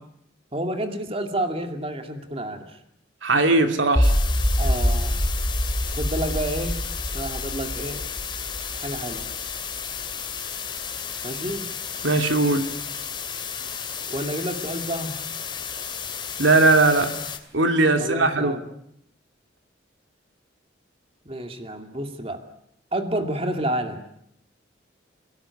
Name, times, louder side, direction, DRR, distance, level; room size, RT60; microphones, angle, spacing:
voice 1, 0.5-2.8 4.6-5.2 5.9-6.8 7.1-8.0 8.7-9.3 11.2-11.7 14.1-15.2 18.0-18.6 21.3-22.4 22.9-24.0, right 1 dB, 30° right, 6 dB, 2.5 m, -29 dB
voice 2, 3.2-4.1 12.0-12.7 16.4-17.1 17.5-18.6, right 2 dB, 80° right, 6 dB, 2.6 m, -19 dB
sound 1, 4.0-17.4, left 7 dB, 25° left, 2.8 m, -33 dB
sound 2, 4.0-10.0, equal, 5° left, 2.5 m, -25 dB
29.5 x 18.5 x 9.8 m, 0.76 s
head